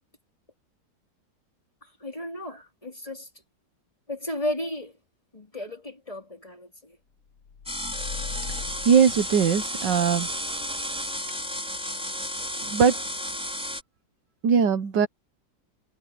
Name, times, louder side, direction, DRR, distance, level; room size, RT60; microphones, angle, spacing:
voice 1, 1.8-3.3 4.1-5.0 5.3-7.0, left 1 dB, 20° left, 3.1 m, -34 dB
sound 1, 7.4-10.0, left 6 dB, 85° left, 2.1 m, -39 dB
sound 2, 7.7-13.8, equal, 5° right, 5.3 m, -32 dB
voice 2, 8.8-10.3 12.6-13.0 14.4-15.1, right 6 dB, 75° right, 1.7 m, -20 dB
omnidirectional pair, 2.0 m